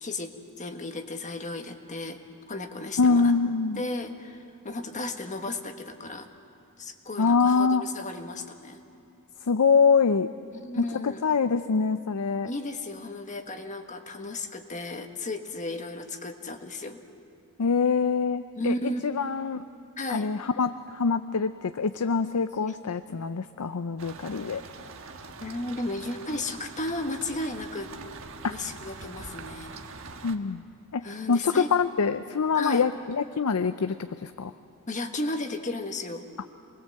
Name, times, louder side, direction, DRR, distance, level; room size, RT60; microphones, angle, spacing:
voice 1, 0.0-3.3 3.8-6.3 6.8-8.8 10.5-11.3 12.4-17.0 18.5-19.0 20.0-20.3 25.4-27.9 28.4-30.0 31.0-31.7 32.5-32.9 34.9-36.3, left 2 dB, 35° left, 5 dB, 1.5 m, -34 dB
voice 2, 3.0-3.8 7.2-7.8 9.4-10.3 10.8-12.5 17.6-19.7 20.1-24.6 30.2-30.6 30.9-34.5, left 5 dB, 85° left, 11 dB, 0.6 m, -25 dB
sound 1, 24.0-30.4, right 4 dB, 65° right, 1.3 m, -43 dB
28.0 x 21.0 x 7.7 m, 2.7 s
head